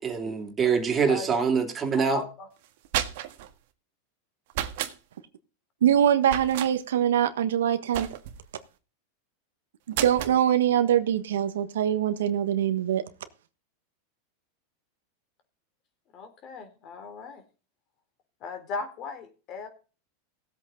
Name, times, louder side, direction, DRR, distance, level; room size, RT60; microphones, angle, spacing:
voice 1, 0.0-2.2, right 6 dB, 25° right, 3.0 m, -25 dB
voice 2, 1.1-1.4 2.1-2.5 16.1-17.4 18.4-19.7, left 4 dB, 45° left, 3.7 m, -37 dB
sound 1, 2.6-3.5 4.5-5.0 6.3-6.7 7.9-8.5 9.9-10.4, right 12 dB, 65° right, 1.8 m, -31 dB
voice 3, 5.8-8.1 9.9-13.0, right 10 dB, 85° right, 1.5 m, -23 dB
17.5 x 8.2 x 3.9 m
supercardioid pair, 120°, 0 cm